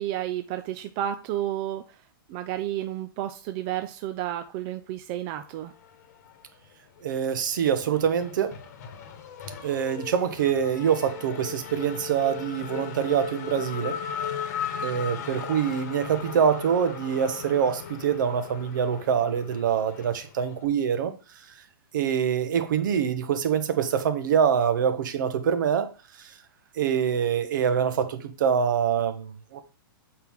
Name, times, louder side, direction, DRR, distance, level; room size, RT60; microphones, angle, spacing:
voice 1, 0.0-2.0 2.3-5.7, right 12 dB, 25° right, 0.4 m, -31 dB
Race car auto racing / Accelerating revving vroom, 5.6-6.7 7.0-20.7, left 7 dB, 45° left, 1.2 m, -37 dB
voice 2, 7.0-8.6 9.6-14.0 14.8-21.1 21.9-25.9 26.8-29.6, right 8 dB, 60° right, 1.1 m, -25 dB
7.6 x 4.6 x 3.6 m
hypercardioid pair, 165°, 12 cm